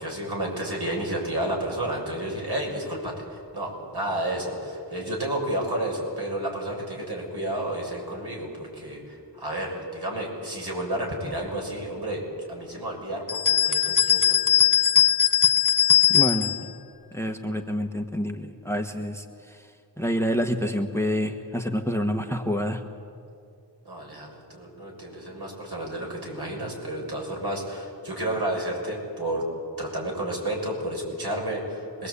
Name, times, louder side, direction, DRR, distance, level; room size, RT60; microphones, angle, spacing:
voice 1, 0.0-12.2 12.5-14.4 23.9-29.4 29.8-32.1, right 1 dB, 65° right, -1 dB, 6.9 m, -31 dB
sound 1, 13.3-16.6, left 9 dB, 45° left, 1.2 m, -20 dB
voice 2, 16.1-16.7 17.1-19.7 20.0-22.8, equal, 5° left, 5 dB, 1.4 m, -28 dB
26.0 x 21.5 x 8.4 m, 2.5 s
wide cardioid pair, 75°, 42 cm